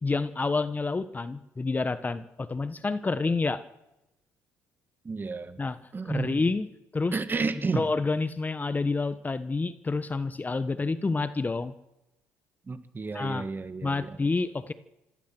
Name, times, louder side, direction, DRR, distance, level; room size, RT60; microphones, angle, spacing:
voice 1, 0.0-3.6 5.6-5.8 6.0-7.2 7.7-11.7 13.1-13.5 13.8-14.7, left 3 dB, 25° left, 12 dB, 1.4 m, -28 dB
voice 2, 5.0-5.6 5.9-6.4 7.1-7.9 12.7-14.1, right 4 dB, 30° right, 9 dB, 2.2 m, -31 dB
26.5 x 15.5 x 6.3 m, 0.94 s
hypercardioid pair, 60°, 7 cm